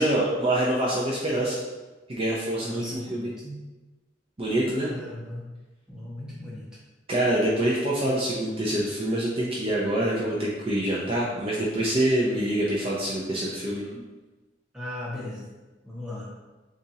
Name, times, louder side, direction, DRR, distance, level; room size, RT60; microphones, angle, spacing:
voice 1, 0.0-1.6 2.1-2.8 3.1-3.3 4.4-4.9 7.1-13.8, right 1 dB, 30° right, -5 dB, 0.6 m, -25 dB
voice 2, 2.6-3.6 4.8-5.5 5.9-6.7 14.7-15.5 15.8-16.3, left 1 dB, 5° right, -7 dB, 1.1 m, -37 dB
6.9 x 2.5 x 2.8 m, 1.2 s
head